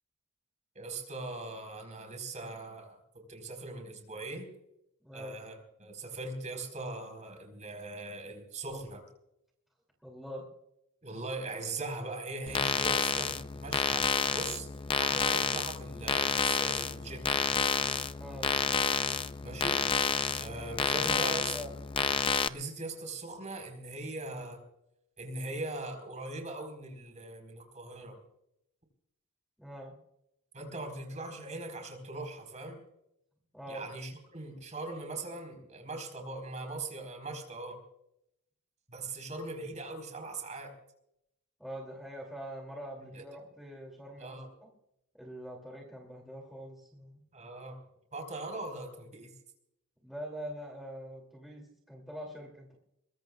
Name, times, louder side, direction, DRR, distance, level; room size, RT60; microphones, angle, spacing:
voice 1, 0.7-4.5 5.1-9.0 11.0-14.7 15.0-17.2 19.4-19.8 20.4-21.6 22.4-24.6 25.2-28.2 30.5-32.8 33.7-37.8 38.9-40.7 43.0-43.2 44.2-44.5 47.3-47.8 48.1-49.3, right 2 dB, 35° right, 4 dB, 4.4 m, -40 dB
voice 2, 5.0-5.4 10.0-10.5 18.1-18.6 20.9-21.7 29.6-29.9 33.5-33.9 41.6-44.7 45.1-47.2 50.0-52.7, equal, ahead, -1 dB, 2.6 m, -44 dB
sound 1, 12.5-22.5, left 5 dB, 25° left, 0.5 m, -30 dB
23.0 x 22.0 x 2.4 m, 0.80 s
head